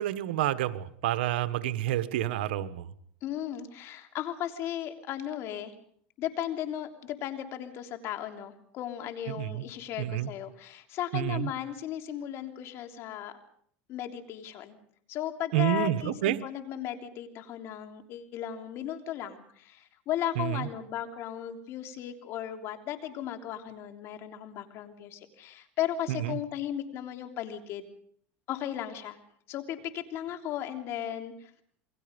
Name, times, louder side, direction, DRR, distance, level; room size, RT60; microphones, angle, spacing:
voice 1, 0.0-2.8 9.4-9.6 10.0-10.3 11.1-11.5 15.5-16.4 20.4-20.7 26.1-26.4, right 13 dB, 85° right, 13 dB, 1.3 m, -29 dB
voice 2, 3.2-5.7 6.2-13.4 13.9-14.8 15.1-27.9 28.5-29.2 29.5-31.5, left 11 dB, 50° left, 6 dB, 3.3 m, -36 dB
28.5 x 22.0 x 5.3 m, 0.62 s
supercardioid pair, 120°, 6 cm